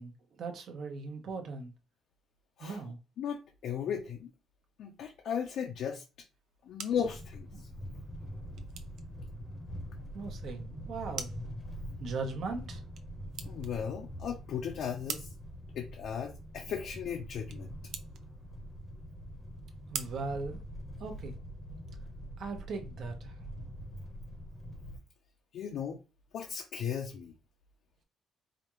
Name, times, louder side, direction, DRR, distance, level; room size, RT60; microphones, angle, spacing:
voice 1, 0.0-1.7 2.6-3.0 7.5-7.6 10.1-11.3 12.0-12.8 19.9-20.6 21.0-21.3 22.4-23.3, right 4 dB, 55° right, 1.0 m, -39 dB
voice 2, 3.2-4.3 4.8-6.0 6.6-7.7 13.5-15.3 15.7-17.7 25.5-26.0 26.3-27.3, left 8 dB, 65° left, 0.6 m, -36 dB
sound 1, 6.3-21.3, right 8 dB, 75° right, 0.5 m, -48 dB
sound 2, 6.9-25.0, equal, 15° left, 0.8 m, -44 dB
4.9 x 2.4 x 3.0 m
cardioid pair, 160°, 0 cm